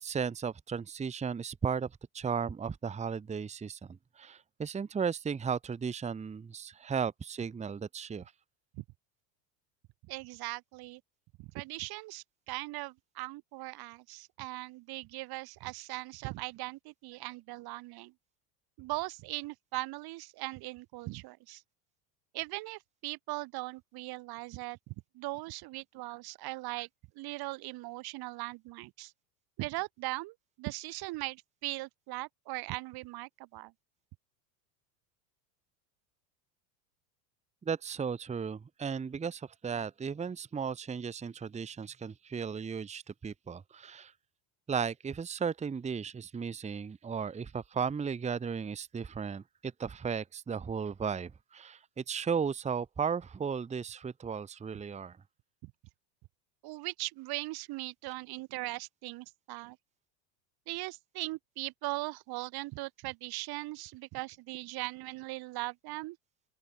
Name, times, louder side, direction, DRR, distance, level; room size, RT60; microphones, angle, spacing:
voice 1, 0.0-1.9 2.1-8.3 37.6-44.1 44.7-55.2, right 6 dB, 15° right, 1.0 m, -35 dB
voice 2, 10.1-11.0 11.4-18.1 18.8-21.6 22.3-26.9 27.2-29.1 29.6-33.7 55.6-55.7 56.6-59.8 60.7-66.2, right 20 dB, 50° right, 1.2 m, -39 dB
open air
supercardioid pair, 105°, 47 cm